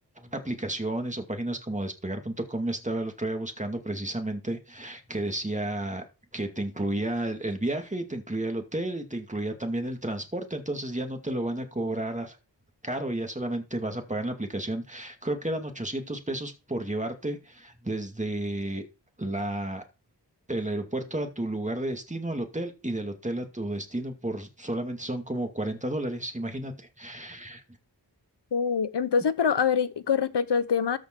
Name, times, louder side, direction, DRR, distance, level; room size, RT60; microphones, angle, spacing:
voice 1, 0.2-6.0 6.3-12.4 12.8-18.9 19.2-19.8 20.5-27.6, right 1 dB, 15° right, 2.3 m, -32 dB
voice 2, 28.5-31.0, left 6 dB, 70° left, 1.0 m, -25 dB
13.5 x 5.2 x 4.6 m
wide cardioid pair, 55°, 42 cm